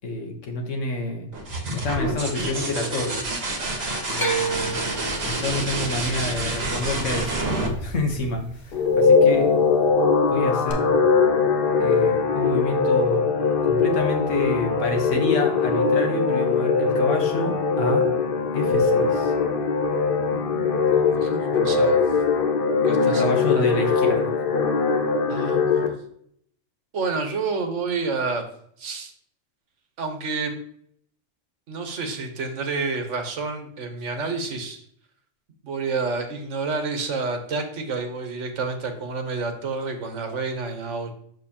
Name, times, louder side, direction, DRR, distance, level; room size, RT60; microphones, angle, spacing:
voice 1, 0.0-1.3 1.7-3.2 4.1-4.9 5.2-7.4 7.8-9.5 10.3-10.9 11.8-13.2 13.6-18.1 18.5-19.3 23.0-24.3, left 2 dB, 80° left, 3 dB, 1.5 m, -28 dB
sound 1, 1.3-8.9 10.7-11.3, right 2 dB, 55° right, 1.3 m, -28 dB
sound 2, 4.2-8.4 8.7-9.4 10.7-10.8, right 4 dB, 20° left, 0.8 m, -31 dB
sound 3, 8.7-25.9, left 5 dB, 50° left, 0.9 m, -21 dB
voice 2, 20.3-22.0 22.8-23.9 25.3-26.0 26.9-28.4 28.8-29.1 30.0-30.6 31.7-34.8 35.6-41.1, right 4 dB, 75° right, 6 dB, 1.3 m, -29 dB
6.5 x 6.1 x 2.9 m, 0.66 s
omnidirectional pair, 1.3 m